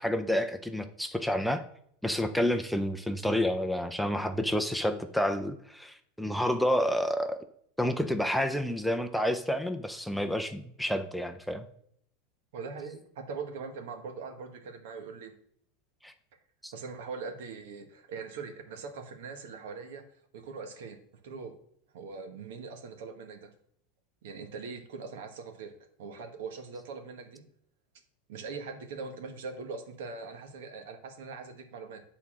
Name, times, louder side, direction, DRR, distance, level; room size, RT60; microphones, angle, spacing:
voice 1, 0.0-1.6 2.0-7.4 7.8-11.7 16.0-16.1 16.6-16.7, equal, ahead, 6 dB, 0.5 m, -29 dB
voice 2, 12.5-15.3 16.7-20.0 20.3-21.0 21.2-21.5 21.9-23.5 24.2-27.4 28.3-32.0, right 4 dB, 75° right, 5 dB, 1.3 m, -41 dB
8.5 x 4.1 x 6.1 m, 0.66 s
supercardioid pair, 140°, 0 cm